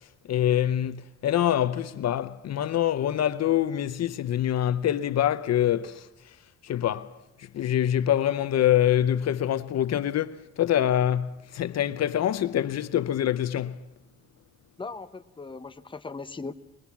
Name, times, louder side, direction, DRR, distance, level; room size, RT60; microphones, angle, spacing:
voice 1, 0.2-6.1 6.6-7.1 7.4-13.8, left 11 dB, 60° left, 0.7 m, -25 dB
voice 2, 14.8-16.5, left 3 dB, 15° left, 0.9 m, -38 dB
22.5 x 21.0 x 7.2 m
cardioid pair, 90°, 30 cm